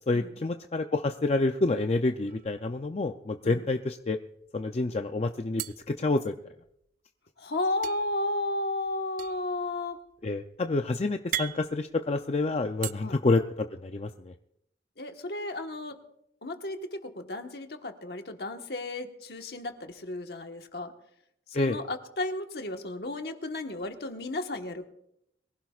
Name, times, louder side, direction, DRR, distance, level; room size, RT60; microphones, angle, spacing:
voice 1, 0.1-4.2 4.5-6.3 10.2-14.3 21.5-21.8, left 3 dB, 35° left, 6 dB, 0.4 m, -28 dB
sound 1, 2.3-3.2 3.5-3.6 3.9-4.6 5.6-6.8 7.8-12.9, right 11 dB, 50° right, 0.4 m, -40 dB
voice 2, 7.4-10.0 13.0-13.2 15.0-16.0 16.4-20.9 21.5-24.9, left 2 dB, 60° left, 5 dB, 1.3 m, -33 dB
22.5 x 16.0 x 2.4 m, 0.77 s
head